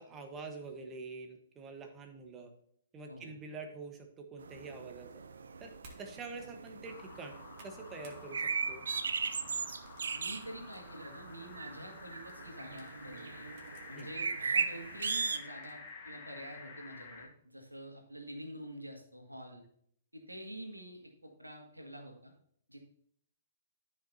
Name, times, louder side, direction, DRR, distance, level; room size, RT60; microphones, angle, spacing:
voice 1, 0.0-2.5 2.9-5.2 5.6-5.7 6.0-8.9 13.9-14.1, right 3 dB, 20° right, 4 dB, 1.2 m, -46 dB
sound 1, 4.4-15.4, right 5 dB, 65° right, 0.5 m, -38 dB
sound 2, 5.8-6.1 6.5-6.8 7.2-8.2 8.6-8.9 9.5-10.8 11.3-11.4 12.3-14.1 14.6-14.7 15.5-15.9, right 2 dB, 40° right, 1.8 m, -60 dB
sound 3, 6.8-17.3, left 4 dB, 35° left, 1.5 m, -51 dB
voice 2, 10.1-13.5 13.9-19.6 20.1-22.3 22.7-22.8, right 1 dB, 85° right, 3 dB, 1.8 m, -47 dB
13.0 x 5.2 x 2.7 m, 0.64 s
figure-of-eight pair, 115°, 0 cm